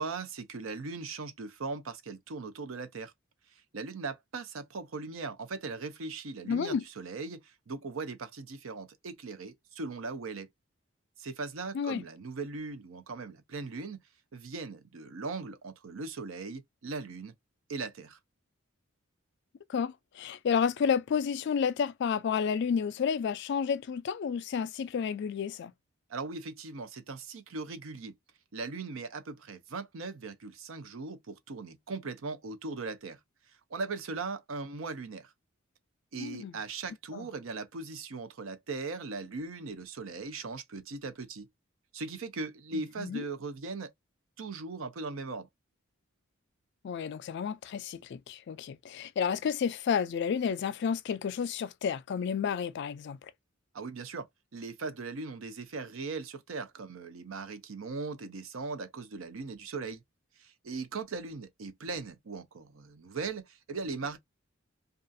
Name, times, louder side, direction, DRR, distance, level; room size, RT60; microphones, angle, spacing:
voice 1, 0.0-3.1 3.7-10.5 11.2-14.0 14.3-17.3 17.7-18.2 26.1-28.1 28.5-33.2 33.7-35.3 36.1-41.5 41.9-43.9 44.4-45.5 53.7-54.3 54.5-60.0 60.4-64.2, right 4 dB, 70° right, 0.6 m, -39 dB
voice 2, 6.4-6.8 11.7-12.0 19.7-25.7 36.2-36.5 37.1-37.3 42.7-43.2 46.8-53.2, left 7 dB, 55° left, 0.3 m, -31 dB
2.4 x 2.4 x 2.5 m
head